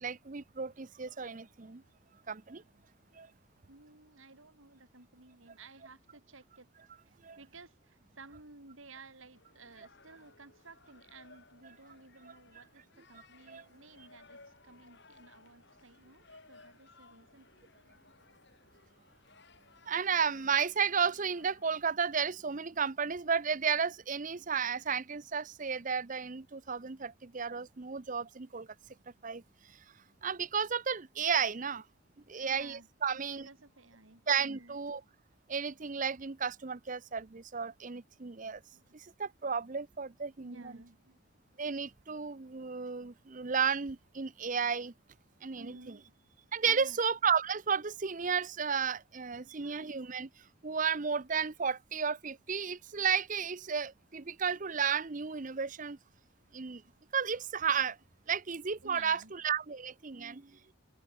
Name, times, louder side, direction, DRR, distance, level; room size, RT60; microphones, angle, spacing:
voice 1, 0.0-1.8 2.3-2.6 3.1-3.3 7.2-7.4 13.5-13.6 19.9-28.7 29.2-29.4 29.7-29.8 30.2-31.8 32.3-33.5 34.3-35.0 35.5-38.6 38.9-40.6 41.6-44.9 45.4-45.8 46.5-50.3 50.6-56.0 56.5-56.8 57.1-58.0 58.3-60.7, right 6 dB, 40° right, 0.7 m, -33 dB
voice 2, 3.7-6.7 7.0-17.5 32.4-34.8 38.7-39.0 40.4-41.2 45.6-46.1 46.6-47.0 49.3-50.1 58.8-59.3, right 3 dB, 70° right, 3.4 m, -55 dB
sound 1, 9.3-21.8, left 3 dB, 55° left, 7.7 m, -60 dB
head